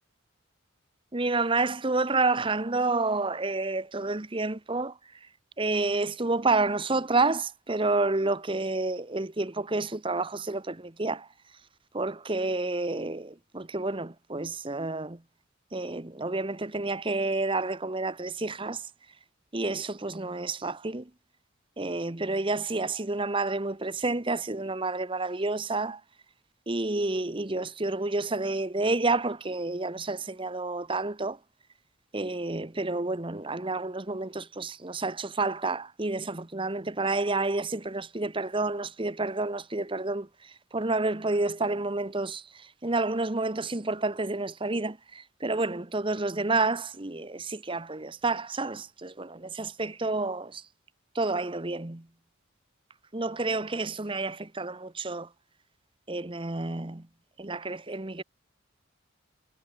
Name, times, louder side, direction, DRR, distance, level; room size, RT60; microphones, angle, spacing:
voice 1, 1.1-5.3 5.6-11.3 11.9-15.2 15.7-18.9 19.5-21.1 21.8-26.0 26.7-31.4 32.1-50.6 51.1-52.1 53.1-55.3 56.1-57.1 57.4-58.2, right 3 dB, 25° right, 1.0 m, -29 dB
head